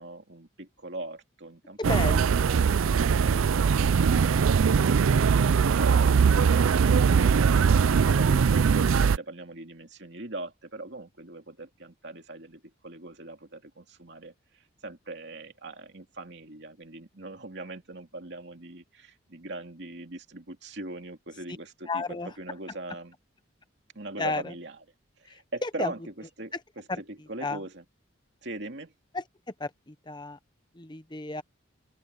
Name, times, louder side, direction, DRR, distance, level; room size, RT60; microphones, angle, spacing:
voice 1, 0.0-2.7 5.7-8.4 8.8-14.3 14.8-23.1 23.9-24.8 25.2-27.8 28.4-28.9, right 2 dB, 55° right, 2.8 m, -41 dB
voice 2, 1.8-2.7 21.9-22.3 24.2-24.5 25.3-25.9 26.9-27.0 27.4-27.6 29.1-29.2 29.6-30.4 30.7-31.4, left 2 dB, 20° left, 0.7 m, -33 dB
sound 1, 1.8-9.2, right 6 dB, 85° right, 0.4 m, -21 dB
open air
head